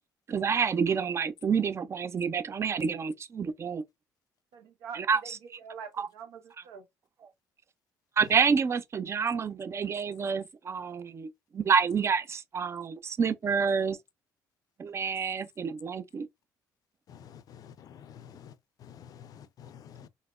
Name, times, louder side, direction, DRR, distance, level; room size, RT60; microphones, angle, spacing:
voice 1, 0.3-1.7 2.1-3.8 4.9-5.4 6.0-6.1 8.2-14.0 14.8-16.3, right 6 dB, 35° right, 0.5 m, -28 dB
voice 2, 4.5-6.8, right 7 dB, 85° right, 0.8 m, -45 dB
voice 3, 17.1-20.1, left 8 dB, 55° left, 0.4 m, -50 dB
3.9 x 2.1 x 2.3 m
supercardioid pair, 70°, 7 cm